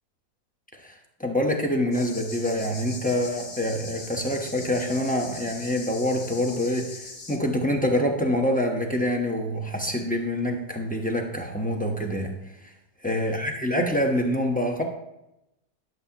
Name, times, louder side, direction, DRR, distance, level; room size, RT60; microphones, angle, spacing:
voice 1, 0.7-12.3 12.6-12.7 13.0-14.8, left 1 dB, 5° left, 2 dB, 0.7 m, -26 dB
sound 1, 1.9-7.4, left 3 dB, 55° left, 1.6 m, -41 dB
11.5 x 7.6 x 2.9 m, 0.88 s
omnidirectional pair, 1.8 m